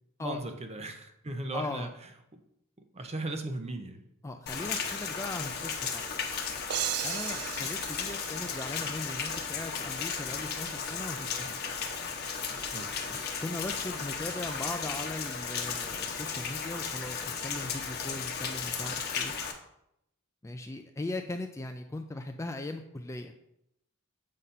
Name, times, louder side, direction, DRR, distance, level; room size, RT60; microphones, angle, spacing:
voice 1, 0.2-2.4 2.9-4.0 12.7-13.2, right 2 dB, 30° right, 6 dB, 0.8 m, -38 dB
voice 2, 1.5-1.9 4.2-6.1 7.0-11.8 13.4-19.3 20.4-23.3, left 2 dB, 15° left, 5 dB, 0.4 m, -39 dB
Rain, 4.5-19.5, left 6 dB, 50° left, 1.0 m, -35 dB
sound 1, 6.7-9.4, right 11 dB, 85° right, 0.4 m, -36 dB
7.5 x 4.1 x 5.5 m, 0.79 s
head